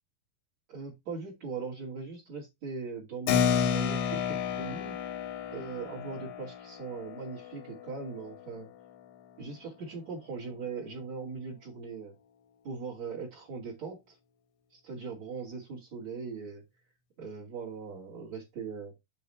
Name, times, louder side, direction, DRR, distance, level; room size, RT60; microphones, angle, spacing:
voice 1, 0.7-5.0 5.5-8.7 9.4-12.1 12.6-14.2 14.7-16.6 17.2-18.9, right 4 dB, 40° right, 1 dB, 3.2 m, -40 dB
Keyboard (musical), 3.3-9.3, left 7 dB, 85° left, 3.3 m, -32 dB
8.6 x 3.8 x 4.5 m, 0.21 s
omnidirectional pair, 5.3 m